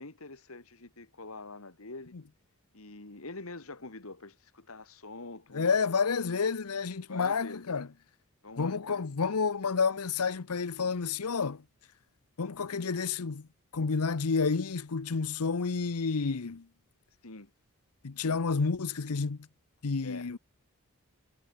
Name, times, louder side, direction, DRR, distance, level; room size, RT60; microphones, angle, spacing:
voice 1, 0.0-2.1 2.7-5.7 7.1-7.6 8.4-9.1 17.2-17.5 20.0-20.3, left 3 dB, 70° left, 2.3 m, -45 dB
voice 2, 5.5-7.9 8.6-11.6 12.4-13.5 13.7-16.7 18.0-19.4 19.8-20.4, left 5 dB, 90° left, 0.8 m, -30 dB
head